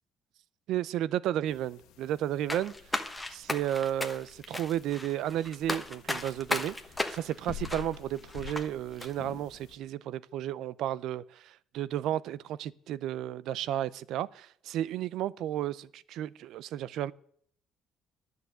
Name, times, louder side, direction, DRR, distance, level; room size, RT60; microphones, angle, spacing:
voice 1, 0.7-2.7 3.3-6.8 7.1-17.1, right 12 dB, 70° right, 0.5 m, -33 dB
sound 1, 1.5-9.8, left 9 dB, 85° left, 1.6 m, -49 dB
sound 2, 2.5-8.7 9.0-9.1, left 1 dB, 5° left, 1.2 m, -35 dB
11.0 x 6.8 x 9.2 m
cardioid pair, 135°, 0 cm